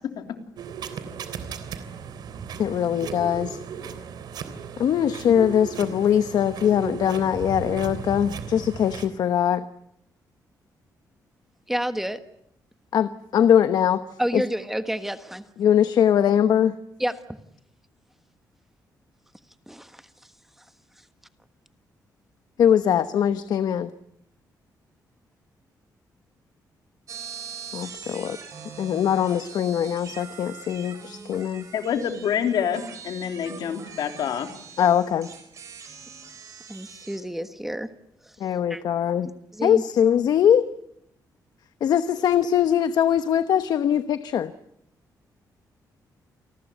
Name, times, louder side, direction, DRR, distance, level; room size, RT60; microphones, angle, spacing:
sound 1, 0.6-9.1, right 7 dB, 80° right, 3.3 m, -36 dB
voice 1, 2.6-3.6 4.8-9.6 12.9-14.0 14.3-14.4 15.6-16.8 22.6-23.9 27.7-28.4 28.8-31.7 34.8-35.3 38.4-39.3 39.6-40.7 41.8-44.5, left 9 dB, 70° left, 11 dB, 1.1 m, -21 dB
voice 2, 11.7-12.2 14.2-15.4 17.0-17.2 19.7-20.0 36.7-37.9 38.7-38.8 39.5-39.8, equal, 5° right, 10 dB, 1.4 m, -29 dB
sound 2, 27.1-37.2, right 7 dB, 50° right, 6.1 m, -42 dB
voice 3, 31.7-34.5, left 8 dB, 90° left, 6 dB, 3.5 m, -27 dB
29.0 x 19.5 x 9.3 m, 0.74 s
wide cardioid pair, 170°, 7 cm